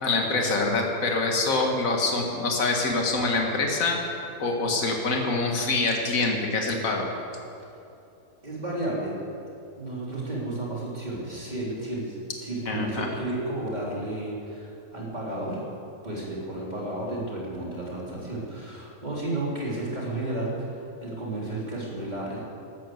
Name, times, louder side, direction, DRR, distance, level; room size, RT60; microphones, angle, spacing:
voice 1, 0.0-4.0 4.4-7.1 12.7-13.1, left 3 dB, 65° left, 1 dB, 2.1 m, -25 dB
voice 2, 8.4-9.2 9.7-15.6 16.0-22.4, right 1 dB, 30° right, -5 dB, 3.7 m, -32 dB
12.5 x 12.5 x 7.8 m, 2.7 s
omnidirectional pair, 1.5 m